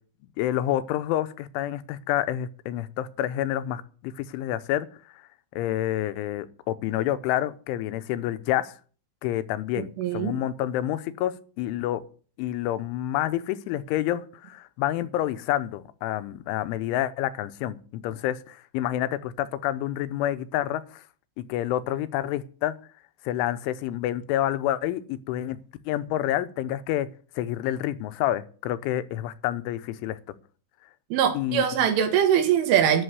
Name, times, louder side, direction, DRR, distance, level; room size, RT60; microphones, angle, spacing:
voice 1, 0.4-4.9 5.5-8.8 9.2-12.0 12.4-21.0 21.4-22.8 23.2-25.6 25.9-30.2 31.3-31.7, left 13 dB, 85° left, 13 dB, 3.2 m, -28 dB
voice 2, 9.8-10.4 31.1-33.0, right 9 dB, 80° right, 6 dB, 4.4 m, -22 dB
11.0 x 7.3 x 9.5 m, 0.41 s
omnidirectional pair, 5.5 m